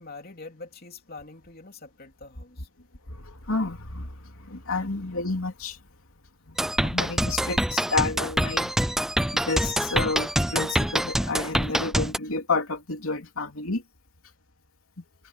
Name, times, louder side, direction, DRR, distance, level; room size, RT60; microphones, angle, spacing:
voice 1, 0.0-2.7, left 3 dB, 45° left, 3.1 m, -44 dB
voice 2, 3.1-5.8 6.5-6.6 6.8-8.7 9.3-13.8, left 3 dB, 75° left, 2.9 m, -30 dB
sound 1, 6.6-12.2, equal, ahead, 0.3 m, -25 dB
head